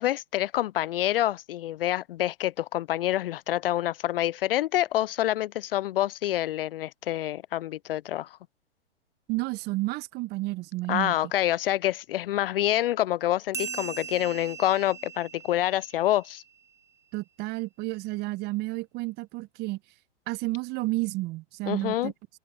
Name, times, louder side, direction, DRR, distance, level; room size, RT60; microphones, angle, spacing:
voice 1, 0.0-8.3 10.9-16.4 21.7-22.1, left 13 dB, 55° left, 0.4 m, -27 dB
voice 2, 9.3-11.1 17.1-19.8 20.3-22.1, right 21 dB, 30° right, 0.9 m, -31 dB
sound 1, 13.5-16.6, right 6 dB, 10° right, 2.1 m, -39 dB
hypercardioid pair, 115°, 34 cm